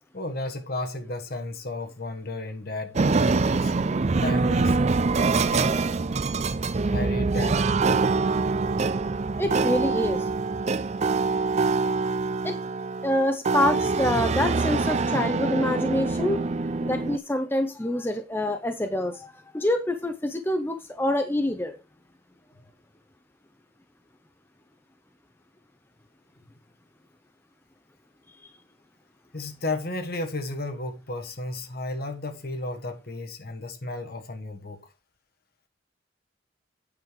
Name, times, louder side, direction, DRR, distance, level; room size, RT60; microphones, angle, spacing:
voice 1, 0.1-3.7 4.2-4.8 5.3-5.8 6.9-8.1 29.3-34.8, left 2 dB, 50° left, 1.4 m, -33 dB
sound 1, 2.9-17.2, right 3 dB, 35° right, 0.5 m, -24 dB
voice 2, 9.4-10.3 12.4-12.6 13.0-16.4 16.8-21.8, left 1 dB, 10° left, 0.7 m, -26 dB
9.0 x 5.5 x 4.9 m
head